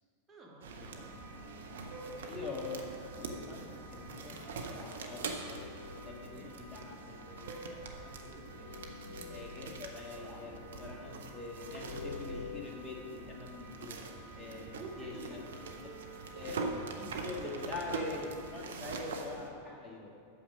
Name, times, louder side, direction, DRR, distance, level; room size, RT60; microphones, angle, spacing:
voice 1, 0.3-1.2 2.2-2.5 6.3-6.5 9.0-9.4 12.2-12.5 14.7-15.4 17.4-17.5, right 2 dB, 15° right, -2 dB, 1.7 m, -51 dB
sound 1, 0.6-19.5, right 4 dB, 60° right, 0.8 m, -44 dB
sound 2, 0.8-18.6, equal, 40° right, 2.3 m, -51 dB
voice 2, 2.2-8.7 9.3-14.0 14.3-15.4 16.3-20.1, left 3 dB, 10° left, -2 dB, 1.6 m, -44 dB
sound 3, 5.5-12.6, left 4 dB, 80° left, 0.3 m, -48 dB
8.5 x 6.7 x 5.4 m, 2.6 s
figure-of-eight pair, 90°, 0 cm